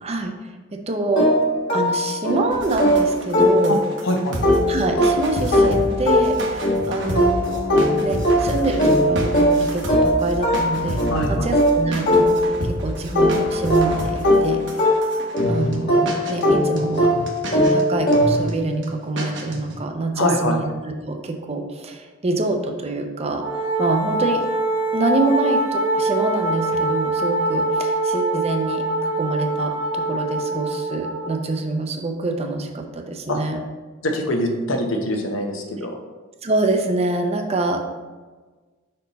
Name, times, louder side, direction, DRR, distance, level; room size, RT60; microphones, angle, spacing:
voice 1, 0.0-0.3 0.7-1.3 1.7-3.8 4.7-14.6 15.5-17.1 17.7-24.4 24.9-28.8 29.2-33.6 36.4-37.9, right 2 dB, 30° right, 4 dB, 0.6 m, -25 dB
sound 1, 1.2-4.0 4.4-12.8 13.2-18.6, equal, 55° left, 1.6 m, -20 dB
sound 2, 2.5-15.8 16.1-16.4 16.7-17.8 18.1-18.5 18.8-18.9 19.2-19.8, right 1 dB, 65° right, 1.0 m, -30 dB
voice 2, 4.0-4.4 11.1-11.5 20.2-20.6 33.3-33.4 34.0-36.0, left 1 dB, 75° left, 3 dB, 0.9 m, -23 dB
Wind instrument woodwind instrument, 23.4-31.4, right 2 dB, 90° right, 1.1 m, -24 dB
5.3 x 4.4 x 4.1 m, 1.3 s
head